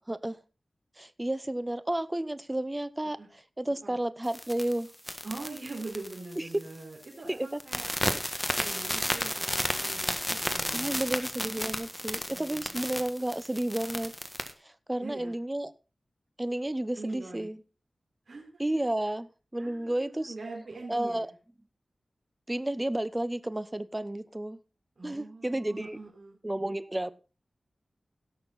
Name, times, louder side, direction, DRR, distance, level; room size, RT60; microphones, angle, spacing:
voice 1, 0.1-0.4 1.0-3.2 3.6-4.9 6.4-6.5 7.3-7.5 10.7-14.1 14.6-15.7 16.4-17.6 18.6-20.3 20.9-21.3 22.5-24.6 25.0-26.0 26.4-27.1, right 1 dB, 20° right, 0.8 m, -32 dB
sound 1, 4.3-6.8 7.0-7.3 7.6-14.5, equal, 5° left, 1.5 m, -33 dB
voice 2, 5.2-7.9 8.6-11.2 12.1-12.9 15.0-15.3 16.9-17.5 18.3-18.5 19.5-21.3 25.0-26.4, right 3 dB, 65° right, 4.5 m, -43 dB
17.0 x 6.5 x 4.1 m
wide cardioid pair, 60°, 0 cm